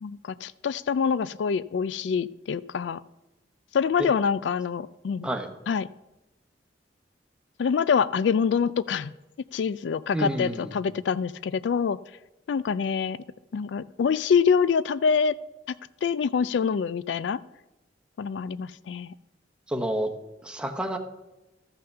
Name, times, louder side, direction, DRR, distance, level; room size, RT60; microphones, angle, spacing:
voice 1, 0.0-3.0 3.7-5.3 5.7-5.9 7.6-9.1 9.5-12.0 12.5-13.2 13.5-15.3 16.0-17.4 18.2-19.1, left 6 dB, 75° left, 17 dB, 0.4 m, -25 dB
voice 2, 10.1-10.7 19.7-20.2 20.4-21.0, right 1 dB, 5° right, 3 dB, 0.9 m, -29 dB
13.5 x 5.6 x 6.6 m, 0.99 s
head